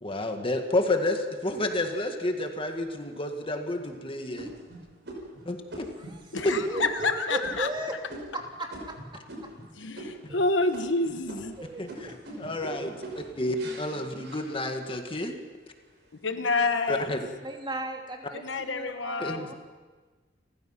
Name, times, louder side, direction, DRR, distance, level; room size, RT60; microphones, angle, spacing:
voice 1, 0.0-4.5 5.5-5.6 11.8-11.9 12.4-12.9 13.4-15.3 16.9-17.2 19.2-19.5, left 2 dB, 30° left, 5 dB, 1.8 m, -30 dB
sound 1, 1.5-2.4 3.0-3.1 3.6-3.9 4.4-9.7 9.9-10.4 10.7-15.0 15.5-16.0, right 1 dB, 65° right, 5.9 m, -43 dB
voice 2, 6.0-8.0 8.3-9.5 10.3-10.4 11.6-12.4 13.3-14.3 16.3-16.4 17.4-19.5, right 2 dB, 25° right, 2 dB, 2.7 m, -37 dB
voice 3, 7.0-7.7 9.8-11.6 16.2-17.1 18.3-19.5, left 3 dB, 70° left, 8 dB, 1.2 m, -28 dB
29.5 x 15.0 x 5.8 m, 1.4 s
head